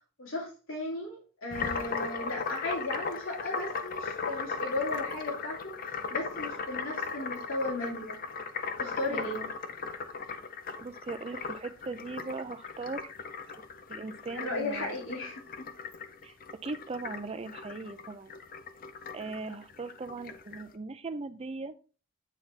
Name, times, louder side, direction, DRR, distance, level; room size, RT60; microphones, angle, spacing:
voice 1, 0.2-8.2 8.8-9.4 14.3-15.7, left 2 dB, 80° left, -2 dB, 2.3 m, -36 dB
sound 1, 1.5-20.6, left 5 dB, 45° left, 0.5 m, -38 dB
voice 2, 9.1-9.5 10.8-13.1 13.9-15.0 16.2-16.4 16.6-18.3 19.1-21.7, right 3 dB, 30° right, 12 dB, 0.4 m, -39 dB
8.3 x 4.1 x 3.3 m, 0.35 s
head